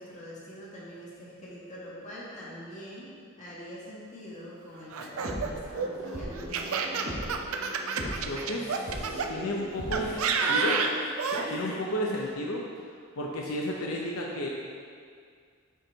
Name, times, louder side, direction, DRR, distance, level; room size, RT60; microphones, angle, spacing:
voice 1, 0.0-7.1 10.0-10.9 11.4-11.8, equal, 35° left, -7 dB, 1.8 m, -43 dB
Laughter, 4.9-9.3 9.9-11.5, right 5 dB, 85° right, 0.5 m, -29 dB
sound 1, 5.1-10.1, equal, 50° right, 1.3 m, -38 dB
voice 2, 8.0-10.2 10.5-10.8 11.5-12.6 13.2-14.5, equal, 85° left, -1 dB, 0.7 m, -32 dB
8.2 x 4.6 x 3.9 m, 2.1 s
head